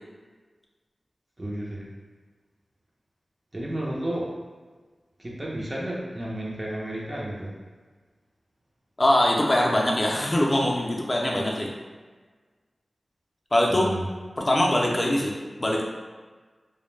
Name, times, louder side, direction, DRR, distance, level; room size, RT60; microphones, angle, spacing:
voice 1, 1.4-1.9 3.5-4.3 5.2-7.5 13.7-14.1, right 1 dB, 30° right, -4 dB, 0.5 m, -32 dB
voice 2, 9.0-11.7 13.5-13.9 14.4-15.8, left 1 dB, 30° left, -1 dB, 0.4 m, -22 dB
2.1 x 2.1 x 3.1 m, 1.4 s
wide cardioid pair, 60°, 0 cm